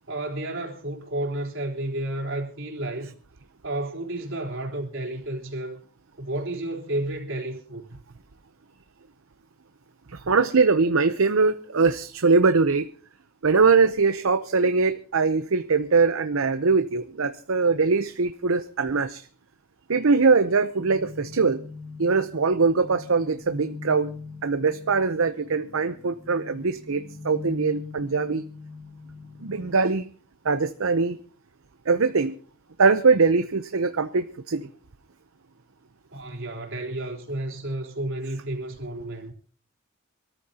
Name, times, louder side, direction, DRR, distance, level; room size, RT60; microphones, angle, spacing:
voice 1, 0.1-3.1 3.6-5.8 6.2-8.0 36.1-39.3, right 1 dB, 65° right, 3.8 m, -31 dB
voice 2, 10.1-12.9 13.4-19.2 19.9-21.6 22.0-24.1 24.4-28.4 29.4-30.1 30.4-31.2 31.9-32.3 32.8-34.7, right 4 dB, 80° right, 0.7 m, -22 dB
sound 1, 20.8-29.7, left 3 dB, 90° left, 4.0 m, -41 dB
24.5 x 13.5 x 2.9 m
head